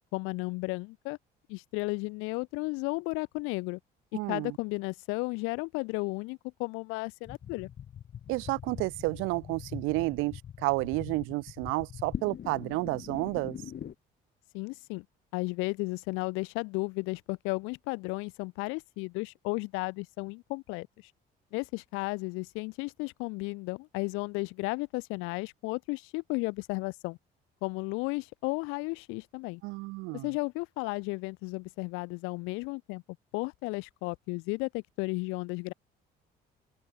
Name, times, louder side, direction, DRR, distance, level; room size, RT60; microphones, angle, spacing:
voice 1, 0.1-1.2 1.5-3.8 4.1-7.7 14.5-15.0 15.3-20.9 21.5-27.2 27.6-29.6 30.2-33.0 33.3-35.7, left 26 dB, 80° left, 0.5 m, -34 dB
voice 2, 4.1-4.6 8.3-13.6 29.6-30.3, right 24 dB, 80° right, 0.7 m, -31 dB
sound 1, 7.2-13.9, left 9 dB, 55° left, 3.0 m, -42 dB
open air
supercardioid pair, 70°, 21 cm